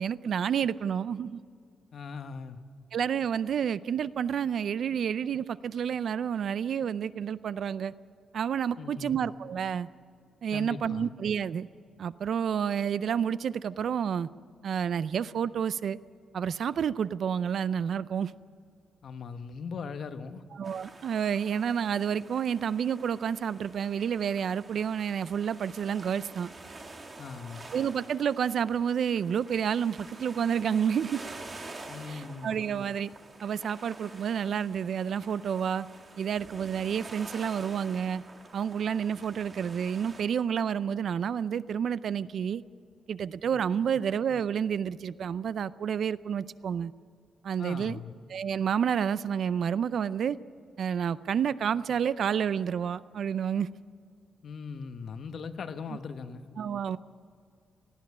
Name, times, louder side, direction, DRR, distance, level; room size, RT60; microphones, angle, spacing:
voice 1, 0.0-1.4 2.9-7.9 8.3-9.9 10.4-11.7 12.0-14.3 14.6-16.0 16.3-18.3 20.5-26.5 27.7-31.2 32.1-33.1 33.4-35.9 36.2-38.2 38.5-42.6 43.1-46.9 47.4-48.0 48.3-50.4 50.8-53.7 56.6-57.0, right 8 dB, 55° right, 17 dB, 0.5 m, -29 dB
voice 2, 1.9-2.6 8.8-9.3 10.5-11.1 19.0-20.4 27.2-27.7 31.9-32.6 47.6-48.1 54.4-56.5, left 5 dB, 55° left, 9 dB, 1.1 m, -39 dB
sound 1, 20.6-40.2, right 2 dB, 25° right, 2.0 m, -48 dB
19.0 x 14.5 x 9.6 m, 2.2 s
wide cardioid pair, 150°, 0 cm